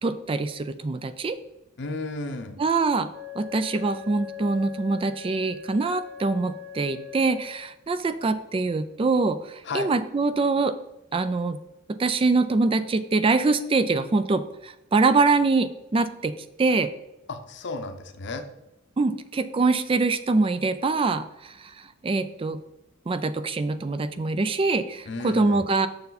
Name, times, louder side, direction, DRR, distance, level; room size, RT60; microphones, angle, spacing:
voice 1, 0.0-1.4 2.6-3.1 3.4-10.7 11.1-11.6 12.0-16.3 16.6-16.9 19.0-21.7 22.0-22.6 23.1-25.9, right 3 dB, 25° right, 12 dB, 0.3 m, -24 dB
voice 2, 1.8-2.6 9.6-9.9 17.3-18.5 25.0-25.6, left 3 dB, 60° left, 8 dB, 0.8 m, -33 dB
Wind instrument woodwind instrument, 3.1-7.7, left 9 dB, 10° right, 1.0 m, -41 dB
6.9 x 6.7 x 4.0 m, 0.90 s
head